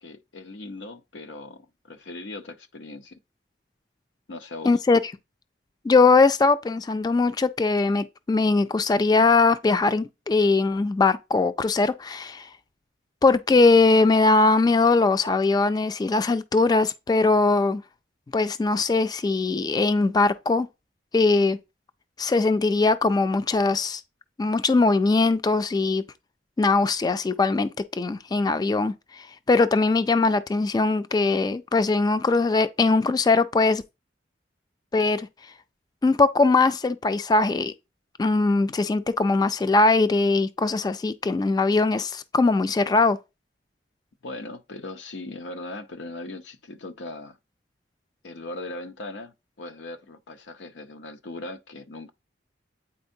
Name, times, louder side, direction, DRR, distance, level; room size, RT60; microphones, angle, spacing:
voice 1, 0.0-3.2 4.3-4.7 44.2-47.4 48.2-52.1, left 2 dB, 90° left, 0.7 m, -39 dB
voice 2, 4.7-5.0 5.8-12.5 13.2-17.8 18.3-20.7 21.1-21.6 22.2-24.0 24.4-26.0 26.6-27.7 28.0-28.9 29.5-33.8 34.9-35.3 36.0-37.7 38.2-43.2, left 3 dB, 20° left, 0.3 m, -21 dB
8.5 x 4.3 x 2.7 m
head